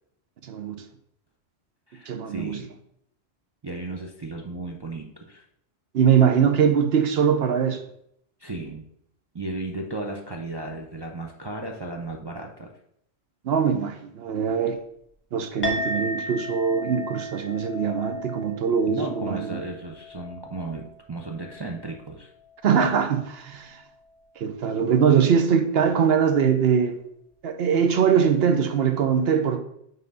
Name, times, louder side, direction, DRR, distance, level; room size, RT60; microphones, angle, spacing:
voice 1, 0.4-0.8 2.1-2.6 5.9-7.8 13.4-14.8 15.3-19.6 22.6-23.8 24.4-27.0 27.4-29.6, right 7 dB, 70° right, 0.9 m, -22 dB
voice 2, 1.9-2.7 3.6-5.4 8.4-8.8 9.3-12.7 18.9-22.3, right 2 dB, 30° right, 0.5 m, -35 dB
Chink clink, 15.6-24.3, left 1 dB, 10° left, 1.3 m, -36 dB
5.6 x 3.8 x 5.3 m
omnidirectional pair, 1.1 m